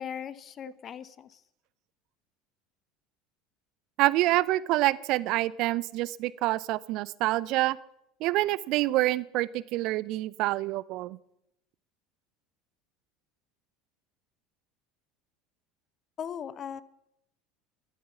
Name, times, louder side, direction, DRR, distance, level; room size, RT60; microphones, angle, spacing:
voice 1, 0.0-1.4 16.2-16.8, left 8 dB, 40° left, 17 dB, 1.0 m, -38 dB
voice 2, 4.0-7.8 8.2-11.2, right 17 dB, 55° right, 21 dB, 0.5 m, -27 dB
13.0 x 12.5 x 7.1 m, 0.79 s
hypercardioid pair, 75°, 0 cm